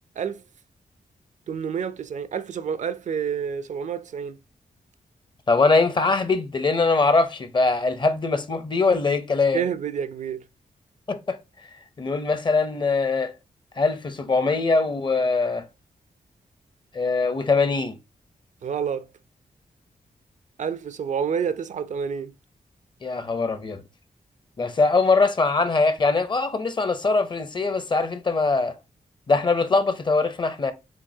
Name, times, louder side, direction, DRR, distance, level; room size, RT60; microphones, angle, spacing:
voice 1, 1.5-4.4 9.5-10.4 18.6-19.1 20.6-22.3, right 7 dB, 60° right, 0.4 m, -28 dB
voice 2, 5.5-9.6 11.1-11.4 12.0-13.3 13.8-15.7 16.9-18.0 23.0-23.8 24.6-28.7 29.3-30.7, left 3 dB, 35° left, 0.6 m, -22 dB
7.2 x 2.6 x 2.7 m
wide cardioid pair, 130°, 14 cm